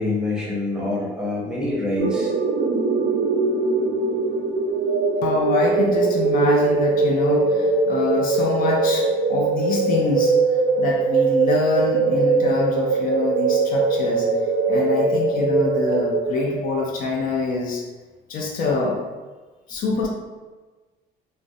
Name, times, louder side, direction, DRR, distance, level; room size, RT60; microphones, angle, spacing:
voice 1, 0.0-2.3, left 2 dB, 5° right, -6 dB, 0.7 m, -25 dB
sound 1, 2.0-16.7, right 3 dB, 55° right, 0.4 m, -21 dB
voice 2, 5.2-10.4 10.8-14.3 14.7-17.8 18.3-19.0 19.7-20.1, left 3 dB, 55° left, -1 dB, 0.4 m, -25 dB
2.4 x 2.0 x 2.5 m, 1.3 s
cardioid pair, 110°, 17 cm